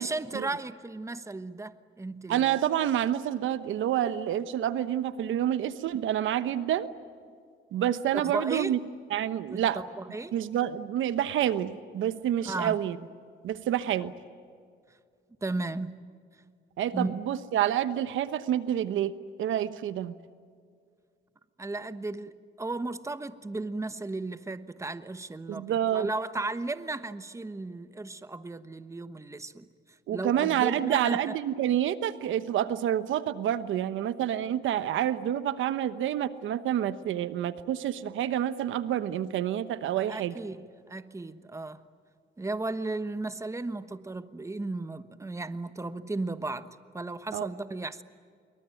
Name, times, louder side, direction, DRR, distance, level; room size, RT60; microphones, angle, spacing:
voice 1, 0.0-2.6 8.1-8.8 9.5-10.4 12.4-12.8 15.4-16.0 16.9-17.2 21.6-29.7 30.1-31.3 40.1-41.8 42.4-48.0, right 2 dB, 15° right, 1.1 m, -35 dB
voice 2, 2.3-6.9 7.7-8.8 9.1-9.8 10.3-13.0 13.4-14.1 16.8-20.1 25.5-26.1 30.1-40.3 47.3-47.5, right 11 dB, 80° right, 1.1 m, -28 dB
26.5 x 23.0 x 9.1 m
cardioid pair, 90°, 20 cm